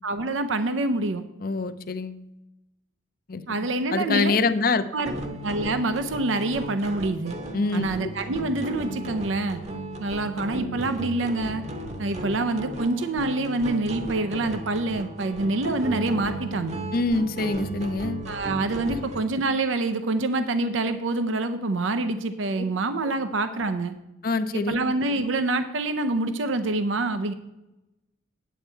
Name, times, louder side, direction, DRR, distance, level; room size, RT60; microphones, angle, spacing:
voice 1, 0.0-1.2 3.5-4.4 4.9-5.1 5.4-7.4 7.7-9.6 10.0-11.6 12.0-16.8 18.3-23.9 24.5-27.3, right 2 dB, 90° right, 9 dB, 0.6 m, -26 dB
voice 2, 1.4-2.2 3.3-3.4 3.9-4.9 7.5-7.9 16.9-18.2 18.9-19.0 24.2-24.7, left 3 dB, 50° left, 12 dB, 0.6 m, -25 dB
sound 1, 5.1-19.2, right 1 dB, 35° right, 0.9 m, -35 dB
9.2 x 8.1 x 4.5 m, 0.95 s
head